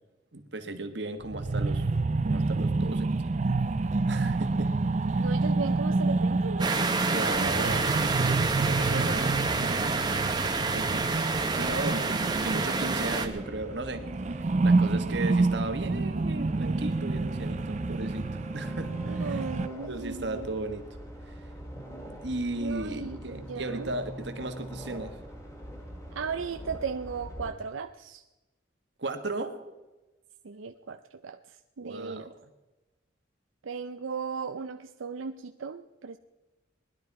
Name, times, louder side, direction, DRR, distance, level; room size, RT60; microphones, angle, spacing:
voice 1, 0.3-1.9 2.2-3.2 4.1-4.7 5.1-5.2 7.1-10.2 10.7-11.1 11.5-19.4 19.9-20.9 21.3-21.4 22.0-25.2 29.0-29.6 31.8-32.3, right 2 dB, 60° right, 7 dB, 1.5 m, -36 dB
sound 1, 1.2-13.6 13.9-19.7, right 3 dB, 35° right, 0.5 m, -28 dB
voice 2, 5.2-6.7 11.8-12.8 19.0-20.5 22.6-23.9 26.1-28.2 30.4-32.2 33.6-36.2, right 5 dB, 85° right, 8 dB, 0.5 m, -37 dB
sound 2, 6.6-13.3, right 4 dB, 20° right, 1.1 m, -28 dB
sound 3, 11.3-27.5, equal, 15° left, 2.2 m, -43 dB
20.0 x 11.5 x 4.7 m, 1.1 s
head